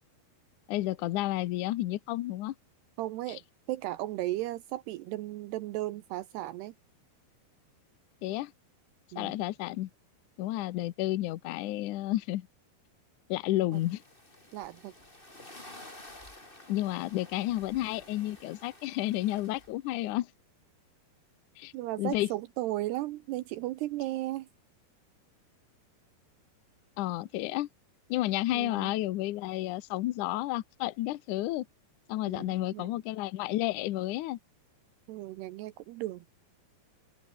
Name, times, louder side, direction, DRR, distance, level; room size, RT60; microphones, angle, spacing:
voice 1, 0.7-2.5 8.2-8.5 9.1-9.9 10.4-12.5 13.3-14.0 16.7-20.3 21.6-21.7 22.0-22.3 27.0-27.7 28.1-31.7 32.1-34.4, left 16 dB, 80° left, 1.8 m, -31 dB
voice 2, 3.0-3.4 3.7-6.7 9.1-9.4 13.7-13.8 14.5-14.9 21.7-24.5 28.5-28.9 32.3-32.9 35.1-36.3, right 16 dB, 80° right, 2.9 m, -35 dB
sound 1, 13.7-20.1, left 1 dB, 10° left, 4.7 m, -52 dB
open air
omnidirectional pair, 4.9 m